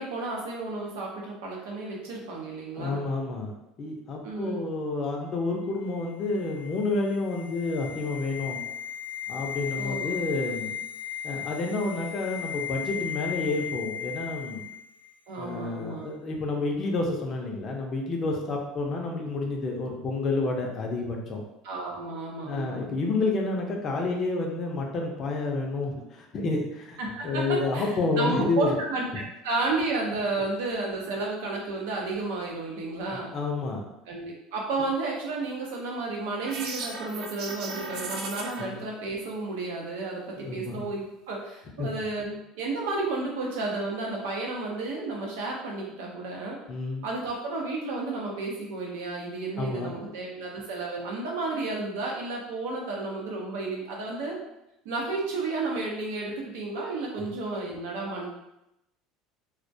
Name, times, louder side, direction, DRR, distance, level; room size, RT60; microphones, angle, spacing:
voice 1, 0.0-3.0 4.2-4.6 9.8-10.2 15.3-16.1 21.6-22.8 27.0-27.9 28.1-33.3 34.1-46.6 47.0-54.4 54.8-58.3, right 3 dB, 90° right, -1 dB, 0.6 m, -32 dB
voice 2, 2.8-3.5 3.8-8.6 9.3-10.7 11.2-14.6 15.4-21.4 22.4-27.0 27.2-28.8 33.1-33.8 38.6-38.8 40.4-40.8 41.8-41.9 46.7-47.1 49.6-50.1 57.2-57.3, left 3 dB, 35° left, 1 dB, 0.4 m, -29 dB
sound 1, 5.8-15.1 15.3-15.5, left 9 dB, 65° left, 0.7 m, -36 dB
sound 2, 36.4-38.6, right 3 dB, 55° right, 0.4 m, -36 dB
2.2 x 2.1 x 2.6 m, 0.86 s
cardioid pair, 155°, 0 cm